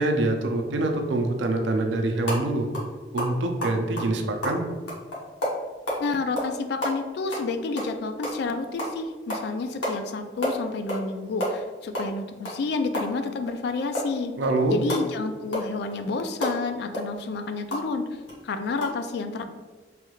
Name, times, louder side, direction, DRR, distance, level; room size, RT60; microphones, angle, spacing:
voice 1, 0.0-2.7 3.1-4.6 14.4-14.8, right 2 dB, 80° right, 4 dB, 0.5 m, -25 dB
sound 1, 2.2-2.4 2.7-2.9 3.2-6.0 6.4-6.5 6.8-8.4 8.8-9.0 9.3-9.5 9.8-10.0 10.2-11.1 11.3-13.6 13.9-17.9 18.3-18.4 18.7-18.8, equal, 90° left, 1.0 m, -30 dB
voice 2, 6.0-14.3 14.6-18.1 18.4-19.4, left 3 dB, 60° left, 8 dB, 0.3 m, -30 dB
3.3 x 2.3 x 3.0 m, 1.3 s
head